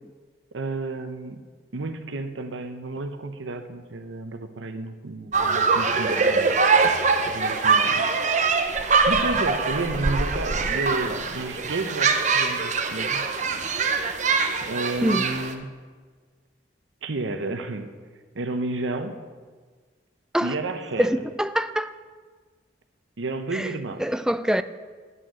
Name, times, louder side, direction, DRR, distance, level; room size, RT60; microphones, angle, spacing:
voice 1, 0.5-1.4 1.7-6.6 7.3-8.1 9.1-13.2 14.1-14.4 14.7-15.7 17.0-17.9 18.3-19.2 20.4-21.2 23.2-24.0, right 2 dB, 90° right, 0.8 m, -31 dB
sound 1, 5.3-15.5, right 4 dB, 40° right, 0.8 m, -23 dB
voice 2, 21.0-21.9 23.5-23.7 24.0-24.6, equal, 5° right, 0.3 m, -24 dB
11.0 x 6.3 x 8.0 m
head